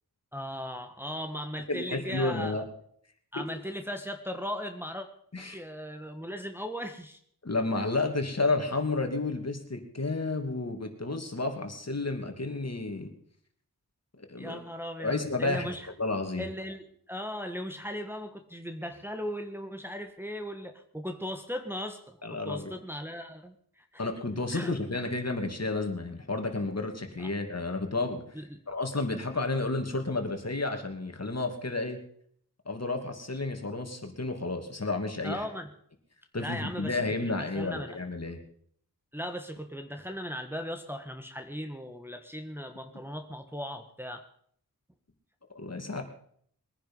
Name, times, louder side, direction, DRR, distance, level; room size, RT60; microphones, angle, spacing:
voice 1, 0.3-2.6 3.3-5.1 5.4-7.2 14.4-15.9 16.4-24.0 24.5-24.7 27.2-27.3 28.3-28.6 35.2-35.7 36.4-38.0 39.1-44.2, equal, 5° right, 5 dB, 1.5 m, -38 dB
voice 2, 1.7-2.6 3.4-3.5 5.3-5.6 7.4-13.1 14.2-14.6 15.0-16.5 22.2-22.7 24.0-28.2 28.7-32.0 32.7-35.5 36.3-38.4 45.5-46.0, left 3 dB, 45° left, 5 dB, 2.6 m, -31 dB
21.5 x 10.0 x 5.6 m, 0.63 s
wide cardioid pair, 50°, 36 cm